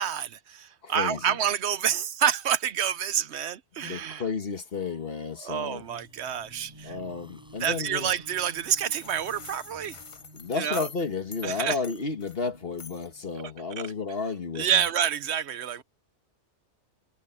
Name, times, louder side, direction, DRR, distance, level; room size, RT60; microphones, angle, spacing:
voice 1, 0.0-4.2 5.4-7.0 7.6-10.0 10.5-10.9 11.4-11.8 13.8-13.9 14.5-15.8, right 9 dB, 70° right, 1.0 m, -28 dB
voice 2, 0.8-1.4 3.8-5.8 6.8-8.1 10.3-14.8, left 4 dB, 55° left, 1.7 m, -32 dB
sound 1, 4.5-10.1, equal, 5° right, 6.6 m, -60 dB
sound 2, 5.9-13.6, equal, 20° right, 3.2 m, -52 dB
sound 3, 8.9-11.5 11.8-12.4 12.8-13.2, left 5 dB, 30° left, 0.7 m, -44 dB
omnidirectional pair, 1.2 m